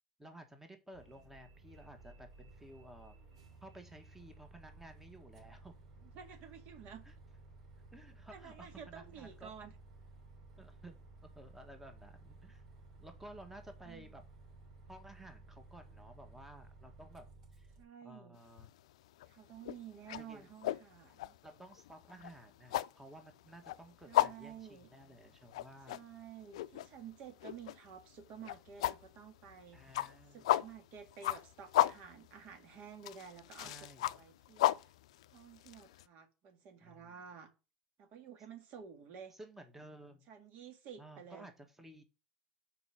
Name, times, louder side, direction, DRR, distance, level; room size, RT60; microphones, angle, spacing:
voice 1, 0.2-3.2 3.6-5.8 7.0-7.1 7.9-9.5 10.6-11.0 11.2-12.6 13.0-14.2 14.9-17.3 17.5-17.7 18.0-18.7 20.2-20.5 21.4-26.0 29.7-30.5 33.6-34.1 36.8-37.2 39.3-40.3 41.0-42.0, right 1 dB, 10° right, 1.7 m, -54 dB
Bus, 0.9-17.8, right 3 dB, 80° right, 3.0 m, -57 dB
voice 2, 6.0-7.0 8.3-9.8 13.8-14.2 17.8-18.4 19.3-21.3 24.1-24.9 25.9-29.8 30.3-34.9 35.3-37.5 38.0-39.3 40.3-41.5, right 7 dB, 60° right, 1.8 m, -52 dB
sound 1, 18.4-18.8 19.1-36.0, left 14 dB, 80° left, 0.4 m, -35 dB
5.8 x 4.7 x 5.8 m
hypercardioid pair, 80°, 3 cm